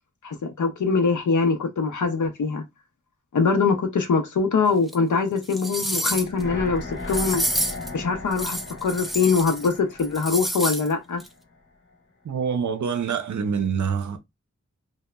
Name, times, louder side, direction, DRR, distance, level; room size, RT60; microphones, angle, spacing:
voice 1, 0.2-2.6 3.3-7.4 7.9-11.2, left 4 dB, 80° left, 0.5 m, -23 dB
sound 1, 4.9-5.0 5.4-6.4 7.1-7.9 8.3-9.7 10.0-10.9 11.2-11.3, right 1 dB, ahead, 0.3 m, -28 dB
sound 2, 6.1-11.2 11.5-11.6, left 2 dB, 40° left, 0.7 m, -36 dB
voice 2, 12.2-14.2, right 6 dB, 70° right, 0.5 m, -26 dB
2.8 x 2.1 x 2.2 m
wide cardioid pair, 50°, 30 cm